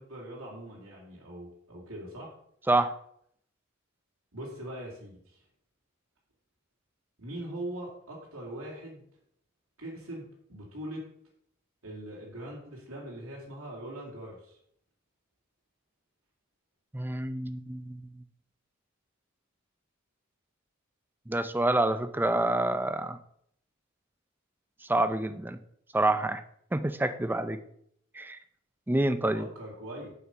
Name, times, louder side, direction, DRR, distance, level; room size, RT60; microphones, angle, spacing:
voice 1, 0.0-2.3 4.3-5.4 7.2-9.0 9.8-11.1 11.8-14.6 29.3-30.1, right 1 dB, 75° right, -3 dB, 2.4 m, -41 dB
voice 2, 16.9-18.0 21.3-23.2 24.9-25.6 25.9-26.4 26.7-27.6 28.1-28.4 28.9-29.5, right 2 dB, 10° right, 11 dB, 0.5 m, -27 dB
7.6 x 5.8 x 5.6 m, 0.68 s
head